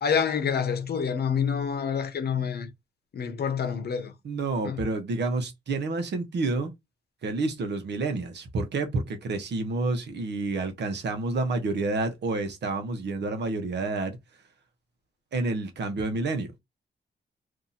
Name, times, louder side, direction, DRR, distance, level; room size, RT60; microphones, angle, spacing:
voice 1, 0.0-2.7 3.1-4.1 4.6-4.8, left 7 dB, 60° left, 0.8 m, -27 dB
voice 2, 4.2-6.7 7.2-14.2 15.3-16.5, right 3 dB, 70° right, 1.0 m, -29 dB
2.8 x 2.6 x 3.9 m
wide cardioid pair, 130°, 18 cm